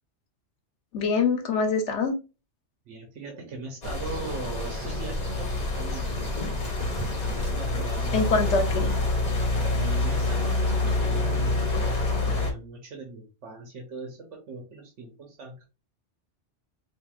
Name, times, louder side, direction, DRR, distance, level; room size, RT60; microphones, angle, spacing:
voice 1, 0.9-2.1 8.1-8.9, left 4 dB, 85° left, 1.1 m, -24 dB
voice 2, 2.9-6.4 7.2-8.8 9.7-11.7 12.2-15.6, right 3 dB, 90° right, 1.2 m, -40 dB
sound 1, 3.8-12.5, left 2 dB, 40° left, 1.0 m, -27 dB
4.4 x 2.7 x 2.3 m
omnidirectional pair, 1.2 m